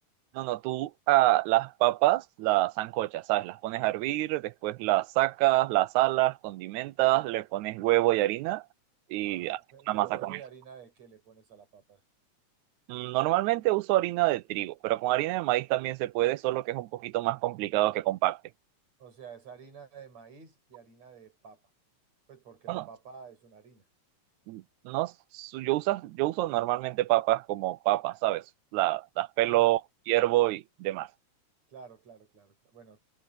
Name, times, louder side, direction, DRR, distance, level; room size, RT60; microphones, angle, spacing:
voice 1, 0.4-8.6 9.1-9.6 9.9-10.4 12.9-18.4 22.7-22.8 24.5-28.4 28.7-29.8 30.1-31.1, right 17 dB, 85° right, 2.0 m, -27 dB
voice 2, 9.2-12.0 19.0-21.6 22.3-23.9 29.5-29.7 31.7-33.0, right 7 dB, 65° right, 7.1 m, -50 dB
omnidirectional pair, 3.3 m